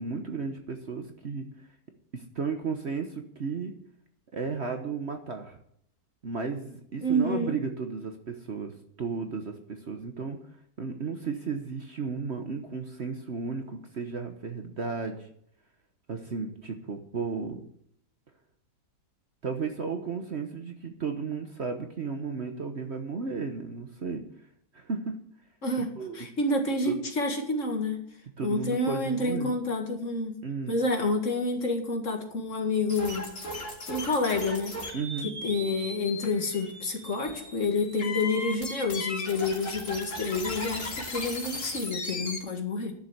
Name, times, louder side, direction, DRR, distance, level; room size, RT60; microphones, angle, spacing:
voice 1, 0.0-1.4 2.1-3.7 4.3-5.6 6.2-8.7 9.0-10.4 10.8-15.3 16.1-17.6 19.4-24.2 24.7-25.2 25.9-26.3 26.9-27.0 28.4-29.5 30.4-30.8 34.9-35.3, right 5 dB, 45° right, 5 dB, 1.2 m, -34 dB
voice 2, 7.0-7.6 25.6-28.0 28.4-30.4 30.7-33.2 33.9-34.8 35.2-42.9, left 2 dB, 45° left, 3 dB, 2.2 m, -29 dB
sound 1, 32.9-42.4, left 2 dB, 65° left, 3.3 m, -37 dB
11.5 x 7.0 x 8.0 m, 0.68 s
omnidirectional pair, 1.8 m